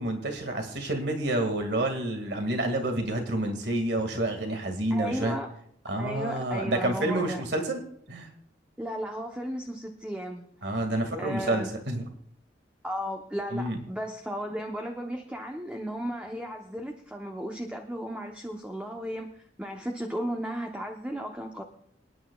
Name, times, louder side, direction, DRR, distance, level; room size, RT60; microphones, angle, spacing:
voice 1, 0.0-5.4 5.9-7.8 8.1-8.3 10.6-12.1 13.5-13.8, right 1 dB, 65° right, 5 dB, 2.0 m, -29 dB
voice 2, 4.9-5.5 6.0-7.4 8.8-10.5 11.2-11.7 12.8-19.3 19.6-21.6, equal, 5° right, 2 dB, 0.8 m, -35 dB
27.0 x 9.7 x 2.3 m, 0.67 s
head